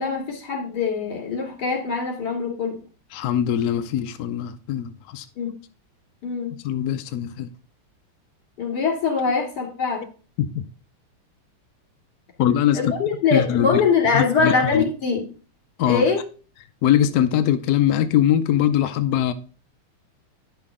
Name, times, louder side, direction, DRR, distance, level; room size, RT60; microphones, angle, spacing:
voice 1, 0.0-2.8 5.4-5.5 6.2-6.5 8.6-10.0 12.7-15.3 15.9-16.2, left 5 dB, 50° left, 3.1 m, -23 dB
voice 2, 3.1-5.2 6.6-7.5 10.4-10.6 12.4-12.9 13.3-13.8 14.1-14.8 15.8-16.0 16.8-19.3, left 10 dB, 75° left, 0.8 m, -21 dB
10.5 x 5.9 x 3.6 m
omnidirectional pair, 2.3 m